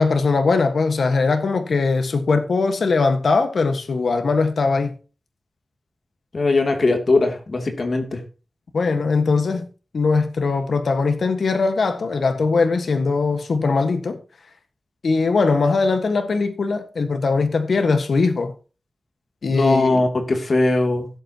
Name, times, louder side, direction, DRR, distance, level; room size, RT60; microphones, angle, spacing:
voice 1, 0.0-4.9 8.7-9.6 9.9-14.2 15.0-18.5 19.4-20.1, left 4 dB, 75° left, 1.5 m, -20 dB
voice 2, 6.3-8.2 19.5-21.1, left 2 dB, 55° left, 2.7 m, -20 dB
16.5 x 8.2 x 2.9 m
wide cardioid pair, 75°, 0 cm